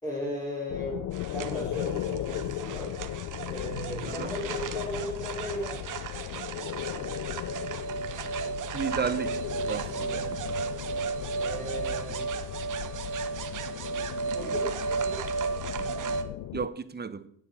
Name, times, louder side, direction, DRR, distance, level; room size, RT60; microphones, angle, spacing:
voice 1, 0.0-3.0 3.5-5.8 9.9-10.2 11.4-12.2 14.3-15.4, equal, 10° left, 4.1 m, -36 dB
sound 1, 0.7-16.7, left 15 dB, 50° left, 0.5 m, -37 dB
sound 2, 1.1-16.2, right 5 dB, 45° right, 1.1 m, -34 dB
voice 2, 8.7-9.9 15.8-15.9 16.5-17.3, right 6 dB, 25° right, 0.8 m, -33 dB
9.6 x 8.4 x 4.8 m
supercardioid pair, 75°, 42 cm